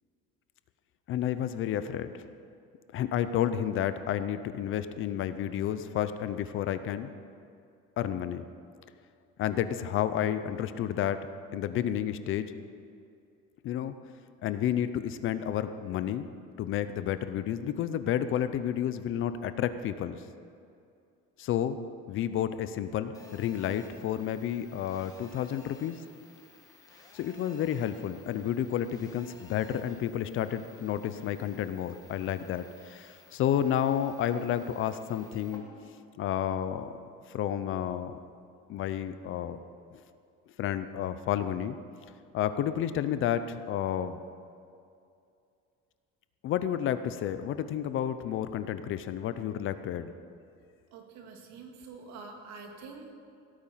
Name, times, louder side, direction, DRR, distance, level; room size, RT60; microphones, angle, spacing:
voice 1, 1.1-2.1 2.9-7.1 8.0-8.4 9.4-11.3 11.5-12.5 13.6-13.9 14.4-16.3 16.6-20.2 21.4-21.8 22.1-26.0 27.1-35.6 36.2-36.9 37.3-38.2 38.7-39.6 40.6-41.8 42.3-44.2 46.4-50.1, left 10 dB, 45° left, 12 dB, 0.6 m, -31 dB
Telephone, 23.1-35.6, left 3 dB, 10° left, 1.3 m, -57 dB
voice 2, 50.9-53.1, right 4 dB, 70° right, 3 dB, 2.2 m, -46 dB
17.5 x 8.8 x 5.7 m, 2.5 s
cardioid pair, 165°, 29 cm